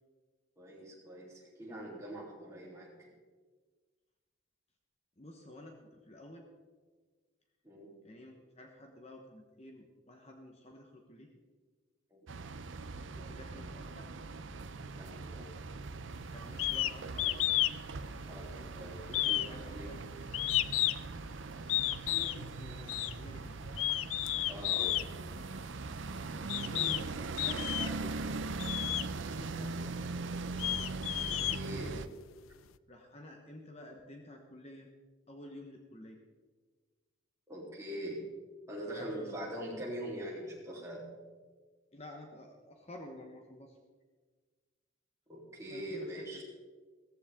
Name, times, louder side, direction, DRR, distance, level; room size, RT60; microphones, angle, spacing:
voice 1, 0.6-3.1 7.6-7.9 12.1-12.3 15.0-15.5 18.3-19.9 24.5-25.0 31.3-32.0 37.5-38.2 38.7-41.1 45.3-46.4, right 1 dB, 15° right, -4 dB, 3.4 m, -43 dB
voice 2, 5.2-5.8 6.1-6.5 8.0-11.3 13.2-14.1 14.4-14.5 16.3-17.6 19.4-20.0 22.1-23.8 25.3-25.4 26.6-28.2 28.9-30.0 32.9-34.9 35.3-36.2 38.9-39.3 41.9-43.7 45.7-46.2, left 1 dB, 30° left, 2 dB, 1.2 m, -50 dB
sound 1, 12.3-32.1, right 3 dB, 70° right, 0.6 m, -41 dB
sound 2, 16.6-16.9 17.2-17.8 18.1-18.7 19.1-21.1 21.7-22.4 22.9-23.1 23.7-25.1 25.9-26.0 26.5-27.0 27.4-28.1 28.6-29.1 29.7-29.8 30.3-32.1, left 15 dB, 85° left, 0.4 m, -32 dB
17.0 x 14.5 x 3.7 m, 1.4 s
head